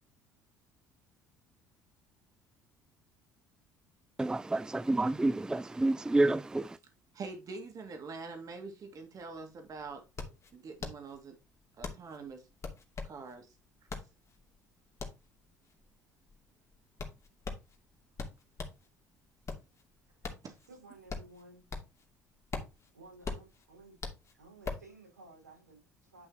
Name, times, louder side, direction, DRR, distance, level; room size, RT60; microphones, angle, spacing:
voice 1, 4.2-6.8, right 2 dB, 10° right, 0.4 m, -29 dB
voice 2, 7.1-11.4 11.8-12.4 13.0-13.5 20.4-20.5, right 4 dB, 45° right, 2.3 m, -45 dB
sound 1, 9.7-18.9 19.3-22.1 22.3-24.9, left 4 dB, 35° left, 2.5 m, -42 dB
voice 3, 20.7-21.7 22.9-24.0 24.4-26.3, right 2 dB, 85° right, 4.9 m, -55 dB
11.0 x 5.7 x 2.9 m
figure-of-eight pair, 55°, 9 cm